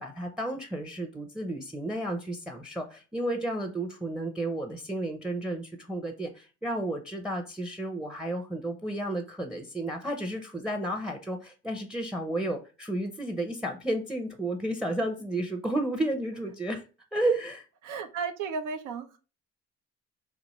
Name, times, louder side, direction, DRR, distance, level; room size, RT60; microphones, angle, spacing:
voice 1, 0.0-16.8 17.1-17.6, right 1 dB, 5° right, 6 dB, 0.5 m, -32 dB
voice 2, 17.8-19.2, right 5 dB, 90° right, 8 dB, 0.7 m, -34 dB
4.2 x 2.5 x 2.9 m, 0.33 s
cardioid pair, 90°, 30 cm